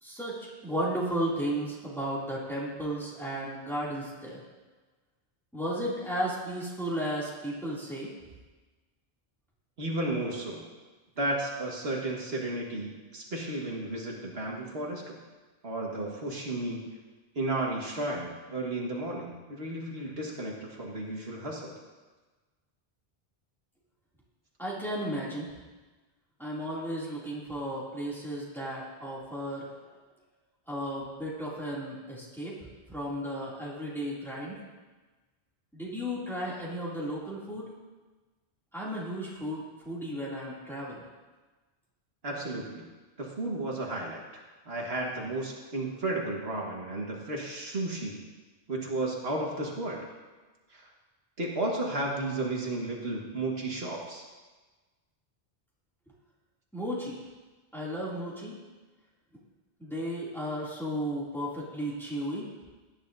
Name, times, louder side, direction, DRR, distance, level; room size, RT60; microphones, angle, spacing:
voice 1, 0.0-0.4 0.6-4.4 5.5-8.1 24.6-25.5 26.4-29.7 30.7-32.5 32.9-34.6 35.7-37.7 38.7-41.0 56.7-57.2 57.7-58.6 59.8-62.5, equal, ahead, -7 dB, 2.6 m, -34 dB
voice 2, 9.8-10.7 11.2-15.2 15.6-16.9 17.4-21.8 42.2-42.9 43.2-48.2 48.7-50.1 50.7-50.9 51.4-54.2, right 2 dB, 75° right, -2 dB, 1.9 m, -33 dB
17.0 x 10.0 x 2.7 m, 1.3 s
omnidirectional pair, 1.1 m